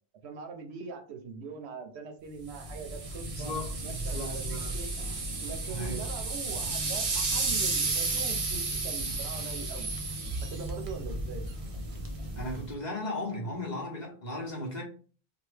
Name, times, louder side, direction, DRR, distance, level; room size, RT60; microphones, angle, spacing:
voice 1, 0.2-3.5 3.8-4.9 5.4-10.0 10.2-11.4, right 5 dB, 85° right, 0.9 m, -42 dB
sound 1, 2.5-12.7, right 3 dB, 45° right, 0.5 m, -33 dB
voice 2, 3.3-4.7 5.7-6.0 12.3-14.8, left 1 dB, 45° left, 1.0 m, -36 dB
2.9 x 2.3 x 3.2 m
omnidirectional pair, 1.1 m